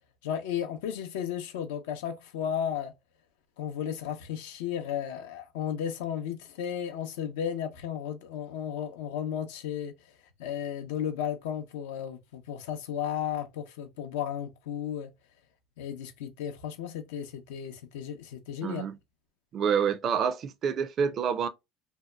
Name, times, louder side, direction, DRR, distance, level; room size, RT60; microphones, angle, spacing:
voice 1, 0.2-2.9 3.6-9.9 10.4-15.1 15.8-18.8, left 9 dB, 85° left, 0.5 m, -34 dB
voice 2, 18.6-19.0 19.5-21.5, right 7 dB, 45° right, 0.4 m, -27 dB
2.7 x 2.2 x 2.2 m
supercardioid pair, 100°, 0 cm